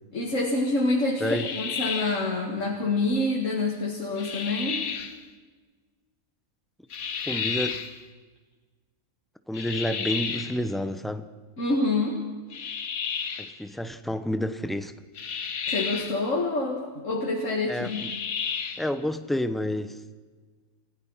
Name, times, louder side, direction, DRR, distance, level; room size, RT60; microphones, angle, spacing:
voice 1, 0.1-1.3 1.6-4.9 11.6-12.2 15.7-18.1, left 2 dB, 65° left, -1 dB, 2.4 m, -27 dB
sound 1, 1.2-2.3 4.2-5.2 6.9-7.9 9.5-10.6 12.5-13.5 15.2-16.2 17.8-18.9, left 6 dB, 90° left, 1.6 m, -32 dB
voice 2, 7.3-7.8 9.5-11.3 13.4-14.9 17.7-18.1 18.8-20.0, left 1 dB, ahead, 10 dB, 0.6 m, -29 dB
29.0 x 16.0 x 5.7 m, 1.4 s
omnidirectional pair, 1.4 m